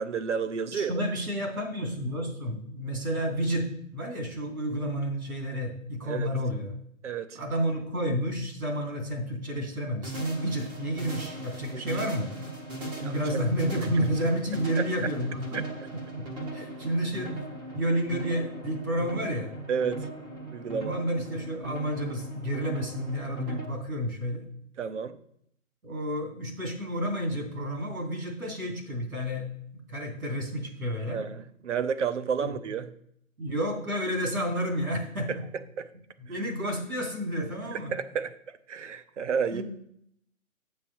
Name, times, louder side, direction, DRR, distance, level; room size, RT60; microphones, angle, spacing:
voice 1, 0.0-1.1 6.1-6.3 7.0-7.4 11.7-11.8 13.0-13.1 19.7-20.1 20.5-21.0 24.8-25.2 31.1-32.9 35.3-35.4 35.8-35.9 36.3-36.4 37.7-39.6, right 6 dB, 55° right, 12 dB, 0.8 m, -31 dB
voice 2, 0.7-6.8 7.3-12.3 13.0-15.6 16.1-16.3 16.5-17.3 17.7-19.5 20.8-24.5 25.8-29.5 29.7-31.2 32.4-32.5 33.4-35.4 36.2-38.0 39.5-39.6, equal, 85° right, 1 dB, 3.0 m, -30 dB
sound 1, 10.0-23.6, right 2 dB, 10° right, 0.9 m, -39 dB
7.6 x 7.3 x 4.4 m, 0.69 s
figure-of-eight pair, 140°, 42 cm